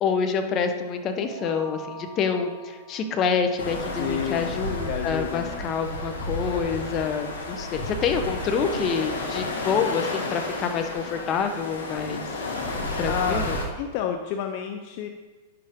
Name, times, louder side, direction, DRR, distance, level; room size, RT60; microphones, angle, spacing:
voice 1, 0.0-12.2 13.0-13.6, left 6 dB, 35° left, 6 dB, 1.1 m, -27 dB
sound 1, 1.2-4.0, right 3 dB, 20° right, 3.1 m, -43 dB
sound 2, 3.6-13.7, left 2 dB, 90° left, 1.7 m, -32 dB
voice 2, 4.0-4.6 4.9-5.6 13.1-13.5 13.8-15.1, left 8 dB, 55° left, 6 dB, 0.7 m, -30 dB
10.0 x 6.8 x 3.8 m, 1.3 s
hypercardioid pair, 125°, 0 cm